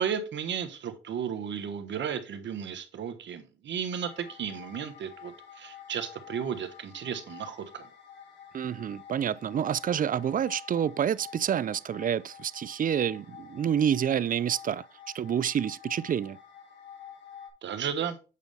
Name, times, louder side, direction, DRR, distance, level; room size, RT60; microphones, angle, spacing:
voice 1, 0.0-7.9 17.6-18.2, right 8 dB, 65° right, 1.3 m, -34 dB
sound 1, 4.0-17.5, left 8 dB, 65° left, 3.3 m, -49 dB
voice 2, 8.5-14.8 15.1-16.4, right 9 dB, 45° right, 0.4 m, -28 dB
8.3 x 5.2 x 3.5 m
cardioid pair, 70°, 20 cm